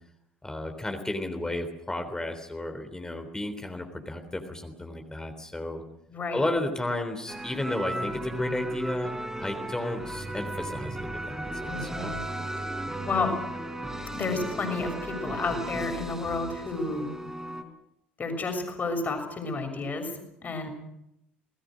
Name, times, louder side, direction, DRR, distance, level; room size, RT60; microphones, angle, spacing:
voice 1, 0.4-5.8 6.3-12.1, left 2 dB, 10° left, 6 dB, 3.6 m, -33 dB
voice 2, 6.1-6.4 11.7-12.2 13.1-13.3 14.1-17.1 18.2-20.1 20.4-20.7, left 3 dB, 30° left, 6 dB, 6.5 m, -31 dB
sound 1, 7.3-17.6, right 1 dB, 10° right, 4.8 m, -35 dB
29.5 x 19.5 x 6.4 m, 0.80 s
figure-of-eight pair, 60°, 6 cm